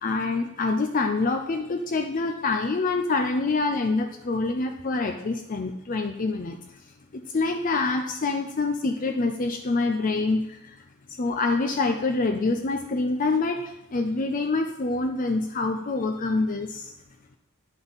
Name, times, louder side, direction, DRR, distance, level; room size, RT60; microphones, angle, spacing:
voice 1, 0.0-6.6 7.1-10.7 11.2-16.9, left 3 dB, 40° left, 5 dB, 0.5 m, -26 dB
9.7 x 5.4 x 4.0 m, 0.86 s
head